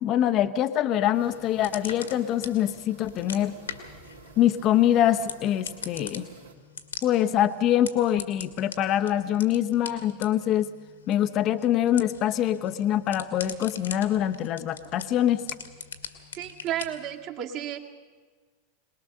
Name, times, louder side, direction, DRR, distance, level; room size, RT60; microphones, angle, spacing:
voice 1, 0.0-3.6 4.4-6.3 7.0-10.7 11.1-15.4, left 11 dB, 40° left, 10 dB, 0.9 m, -24 dB
sound 1, 1.1-6.5, right 3 dB, 85° right, 2.9 m, -50 dB
sound 2, 1.2-17.1, left 6 dB, 75° left, 2.0 m, -42 dB
voice 2, 16.3-17.8, right 11 dB, 45° right, 1 dB, 2.1 m, -32 dB
23.0 x 20.5 x 6.6 m, 1.5 s
figure-of-eight pair, 85°, 0 cm